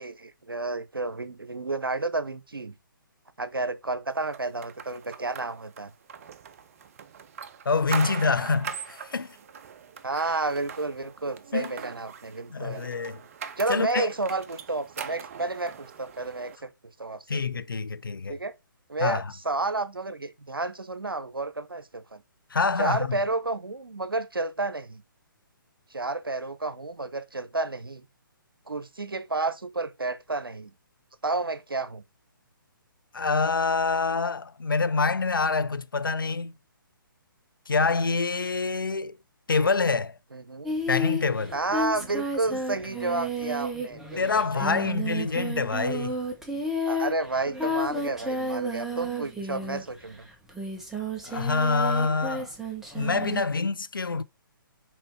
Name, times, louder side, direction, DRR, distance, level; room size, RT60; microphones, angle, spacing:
voice 1, 0.0-2.7 3.4-5.9 10.0-12.8 13.6-16.7 17.0-17.4 18.3-18.5 18.9-22.2 22.8-25.0 25.9-28.0 28.7-30.7 31.2-32.0 40.3-40.7 41.5-44.9 46.5-50.2, right 3 dB, 80° right, 0.9 m, -31 dB
sound 1, 4.3-16.6, right 7 dB, 40° right, 0.7 m, -41 dB
voice 2, 7.7-9.4 11.5-11.7 12.5-13.2 13.7-14.1 17.3-18.4 19.0-19.3 22.5-23.2 33.1-36.5 37.7-39.2 39.5-40.2 40.9-41.5 44.2-46.2 51.2-52.5 52.9-54.2, left 4 dB, 70° left, 0.6 m, -26 dB
Singing, 40.6-50.0 50.5-53.4, equal, 5° right, 1.2 m, -32 dB
6.2 x 4.5 x 4.5 m
figure-of-eight pair, 135°, 12 cm